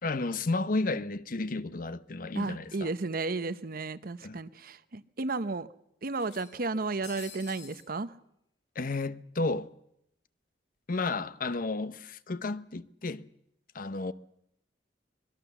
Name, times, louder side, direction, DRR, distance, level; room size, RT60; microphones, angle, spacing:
voice 1, 0.0-2.9 4.2-4.4 8.7-9.7 10.9-13.3 13.7-14.1, left 3 dB, 50° left, 0.8 m, -32 dB
voice 2, 2.4-5.7 6.0-8.1, right 3 dB, 55° right, 0.9 m, -33 dB
sound 1, 2.8-2.9 3.2-3.3 4.3-4.4 4.8-4.9 6.2-7.9, left 7 dB, 80° left, 3.1 m, -50 dB
24.5 x 21.0 x 7.0 m
head